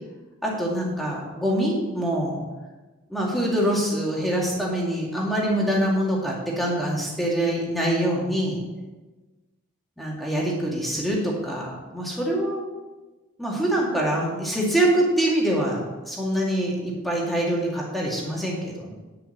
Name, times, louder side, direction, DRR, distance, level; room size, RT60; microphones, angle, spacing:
voice 1, 0.4-2.4 3.1-8.6 10.0-12.6 13.4-18.9, right 1 dB, ahead, -4 dB, 2.2 m, -25 dB
10.5 x 5.7 x 6.3 m, 1.2 s
head